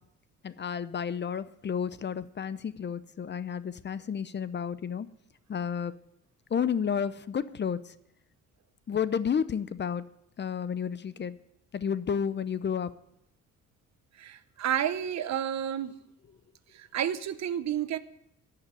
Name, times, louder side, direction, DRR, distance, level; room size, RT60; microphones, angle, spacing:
voice 1, 0.4-5.1 5.5-5.9 6.5-7.8 8.9-10.0 10.4-11.3 11.7-12.9, left 7 dB, 35° left, 0.7 m, -31 dB
voice 2, 14.2-16.0 16.7-18.0, right 10 dB, 65° right, 0.9 m, -30 dB
14.5 x 5.8 x 9.5 m
cardioid pair, 90°, 30 cm